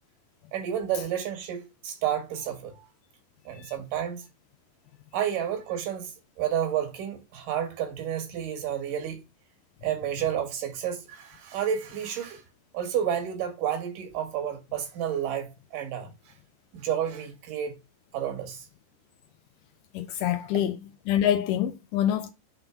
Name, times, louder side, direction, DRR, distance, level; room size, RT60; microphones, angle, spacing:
voice 1, 0.5-2.8 3.5-4.2 5.1-6.1 6.4-9.2 9.8-12.4 12.7-16.1 16.7-17.8 18.1-18.6, right 9 dB, 80° right, 3.1 m, -30 dB
voice 2, 19.9-20.8 21.1-22.3, left 10 dB, 80° left, 2.1 m, -25 dB
6.2 x 3.9 x 5.7 m
omnidirectional pair, 3.8 m